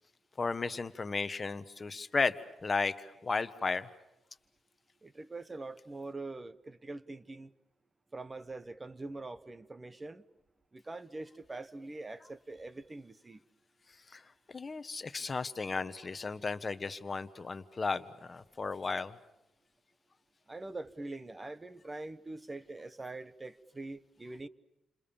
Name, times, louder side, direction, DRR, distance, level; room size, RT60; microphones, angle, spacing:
voice 1, 0.4-2.4 2.6-3.9 14.1-19.2, left 4 dB, 25° left, 1.2 m, -34 dB
voice 2, 5.0-7.5 8.1-10.2 10.7-13.4 20.5-24.5, right 2 dB, 15° right, 1.0 m, -44 dB
29.5 x 27.5 x 7.1 m
wide cardioid pair, 165°, 0 cm